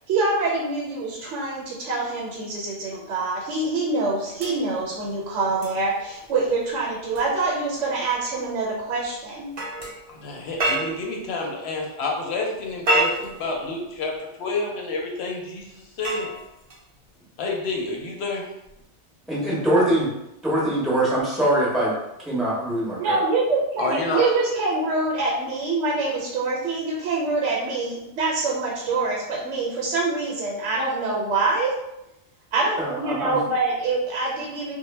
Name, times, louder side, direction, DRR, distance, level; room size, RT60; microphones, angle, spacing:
voice 1, 0.1-9.5 23.0-31.7 32.5-34.8, right 3 dB, 80° right, -3 dB, 0.9 m, -25 dB
sound 1, 4.4-11.2 12.5-14.1 15.6-17.1 18.6-18.8, right 1 dB, 50° right, 0.4 m, -31 dB
voice 2, 10.1-14.1 14.4-16.3 17.4-18.5 23.8-24.3, left 3 dB, 70° left, 0 dB, 0.8 m, -29 dB
voice 3, 19.3-20.1 20.4-21.9 22.3-23.2 32.8-33.4, right 1 dB, ahead, -7 dB, 0.5 m, -23 dB
2.1 x 2.1 x 3.1 m, 0.88 s
omnidirectional pair, 1.2 m